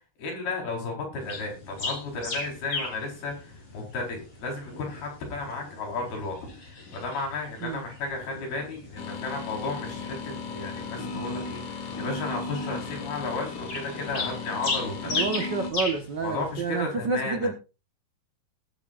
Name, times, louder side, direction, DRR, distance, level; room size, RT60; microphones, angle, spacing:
voice 1, 0.2-6.4 6.9-15.2 16.2-17.5, left 3 dB, 75° left, 1 dB, 6.7 m, -33 dB
sound 1, 1.2-16.8, left 3 dB, 35° left, 5.1 m, -38 dB
sound 2, 9.0-15.7, left 3 dB, 55° left, 2.9 m, -36 dB
voice 2, 15.0-17.5, right 4 dB, 90° right, 5 dB, 0.9 m, -29 dB
20.0 x 9.8 x 2.6 m, 0.30 s
omnidirectional pair, 4.4 m